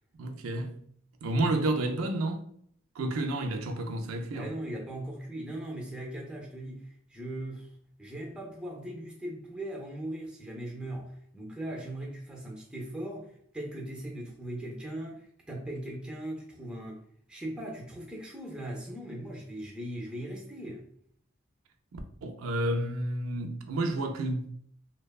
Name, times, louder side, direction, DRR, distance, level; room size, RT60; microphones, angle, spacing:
voice 1, 0.2-0.8 1.2-2.5 3.0-4.5 21.9-24.4, right 2 dB, 90° right, 0.4 m, -30 dB
voice 2, 4.3-7.7 8.0-17.0 17.3-20.9, right 1 dB, 5° right, 0.4 m, -39 dB
2.7 x 2.1 x 2.2 m
head